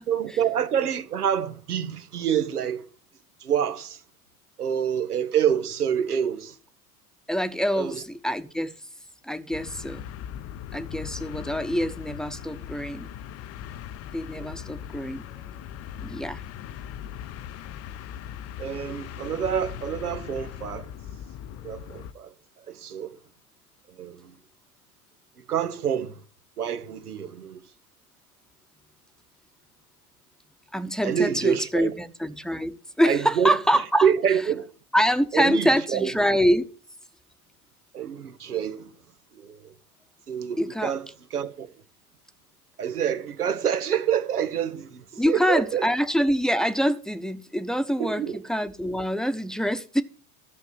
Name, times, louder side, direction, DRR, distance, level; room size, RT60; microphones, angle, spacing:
voice 1, 0.1-2.9 3.4-4.0 4.6-6.6 7.7-8.0 14.3-14.7 18.6-20.9 21.6-22.3 22.7-23.2 23.9-24.3 25.5-26.2 26.6-27.6 31.0-31.9 33.0-33.6 34.0-34.7 35.3-36.1 37.9-38.9 39.3-39.7 40.3-41.0 41.3-41.7 42.8-45.9 48.0-48.4, right 8 dB, 80° right, 1.4 m, -27 dB
voice 2, 7.3-8.7 9.2-10.0 10.7-13.1 14.1-15.3 16.0-16.4 30.7-34.1 34.9-36.7 40.6-40.9 45.2-50.0, equal, ahead, 1.1 m, -25 dB
sound 1, 9.5-22.1, left 10 dB, 35° left, 0.8 m, -39 dB
14.0 x 6.6 x 9.0 m
figure-of-eight pair, 80°, 45 cm